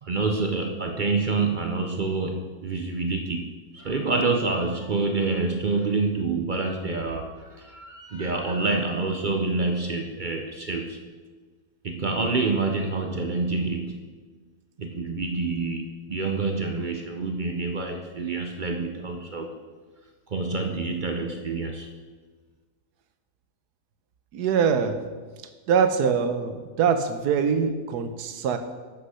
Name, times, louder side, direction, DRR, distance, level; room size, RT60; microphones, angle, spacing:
voice 1, 0.0-11.0 11.8-14.1 14.8-19.5 20.3-21.9, right 3 dB, 55° right, 3 dB, 0.5 m, -27 dB
voice 2, 24.3-25.0 25.7-28.6, right 6 dB, 80° right, 9 dB, 1.3 m, -23 dB
8.3 x 6.4 x 5.5 m, 1.4 s
omnidirectional pair, 1.7 m